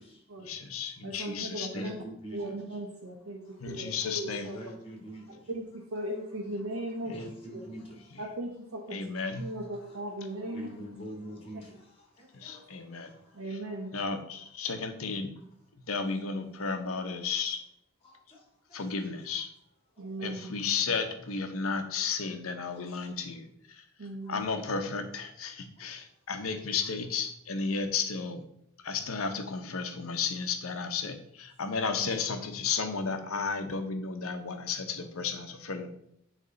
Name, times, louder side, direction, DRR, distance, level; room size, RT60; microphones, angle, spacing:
voice 1, 0.4-1.9 3.6-4.5 7.1-7.3 8.9-9.5 12.3-13.1 13.9-15.4 15.9-17.6 18.7-19.5 20.2-23.8 24.3-28.4 28.8-35.9, left 5 dB, 90° left, 7 dB, 0.8 m, -33 dB
voice 2, 1.0-1.9 2.3-4.6 5.5-7.1 8.2-9.0 9.4-10.7 13.3-13.9 20.0-20.5 24.0-24.4 32.0-32.1, right 1 dB, 90° right, -4 dB, 1.1 m, -37 dB
voice 3, 1.7-2.5 3.4-4.0 4.3-5.5 6.7-8.2 9.1-13.8 14.3-14.4 18.0-19.1 19.9-20.6 22.7-23.1 24.2-24.3 25.8-26.3, right 1 dB, 30° left, -1 dB, 1.9 m, -47 dB
9.6 x 3.3 x 3.9 m, 0.71 s
head